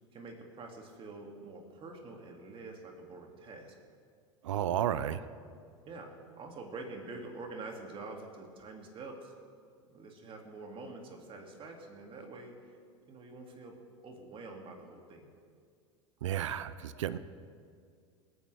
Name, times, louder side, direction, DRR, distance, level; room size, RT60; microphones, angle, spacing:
voice 1, 0.1-3.7 5.8-9.3 9.8-12.8 13.1-13.8 14.0-15.3, right 3 dB, 35° right, 2 dB, 2.6 m, -46 dB
voice 2, 4.4-5.2 16.2-17.2, right 11 dB, 70° right, 15 dB, 0.7 m, -32 dB
28.0 x 9.5 x 3.5 m, 2.2 s
hypercardioid pair, 85°, 16 cm